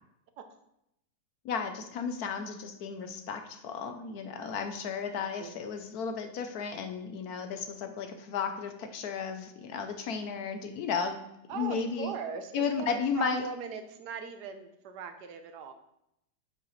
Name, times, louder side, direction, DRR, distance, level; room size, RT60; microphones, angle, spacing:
voice 1, 1.4-11.2 11.5-12.1 12.5-13.4, left 6 dB, 70° left, 7 dB, 1.1 m, -34 dB
voice 2, 5.2-5.6 11.5-15.7, right 6 dB, 75° right, 8 dB, 1.3 m, -40 dB
8.1 x 7.4 x 3.1 m, 0.82 s
omnidirectional pair, 1.8 m